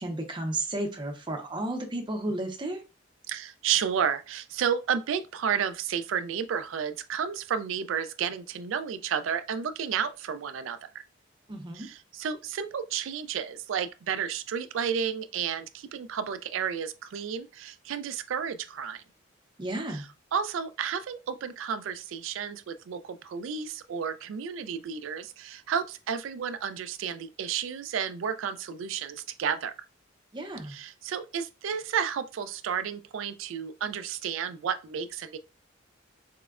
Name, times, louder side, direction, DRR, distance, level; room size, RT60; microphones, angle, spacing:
voice 1, 0.0-2.8 11.5-11.9 19.6-20.0 30.3-30.7, right 1 dB, 25° right, 0.6 m, -33 dB
voice 2, 3.3-11.0 11.7-19.0 19.9-29.7 30.6-35.4, right 7 dB, 80° right, 0.4 m, -32 dB
4.2 x 2.1 x 2.4 m
head